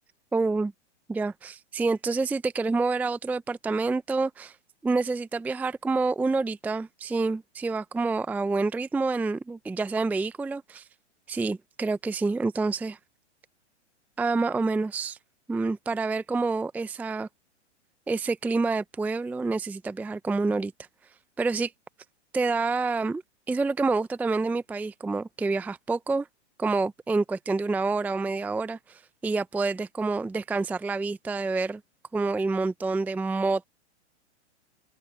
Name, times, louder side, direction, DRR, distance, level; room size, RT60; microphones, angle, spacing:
voice 1, 0.3-0.7 1.1-4.5 4.8-10.8 11.3-13.0 14.2-15.2 15.5-17.3 18.1-20.7 21.4-21.7 22.3-23.2 23.5-26.3 26.6-31.8 32.1-33.7, right 3 dB, 5° right, 0.6 m, -27 dB
open air
hypercardioid pair, 115°, 35 cm